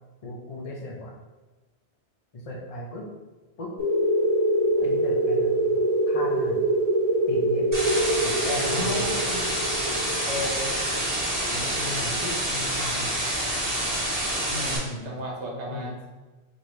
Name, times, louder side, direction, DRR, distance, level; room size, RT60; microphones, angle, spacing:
voice 1, 0.2-1.2 2.3-3.1 3.6-3.7 4.8-5.6 6.1-6.7 7.3-7.7 8.2-9.1 11.5-13.2 14.7-15.2 15.7-16.0, left 1 dB, 45° left, -1 dB, 0.5 m, -36 dB
sound 1, 3.8-12.1, right 1 dB, 85° left, 1.5 m, -25 dB
sound 2, 7.7-14.8, right 1 dB, 15° right, 1.3 m, -27 dB
voice 2, 8.5-9.5 10.3-10.7 14.5-16.0, left 1 dB, 75° right, -2 dB, 1.2 m, -34 dB
4.7 x 2.7 x 3.0 m, 1.2 s
omnidirectional pair, 1.2 m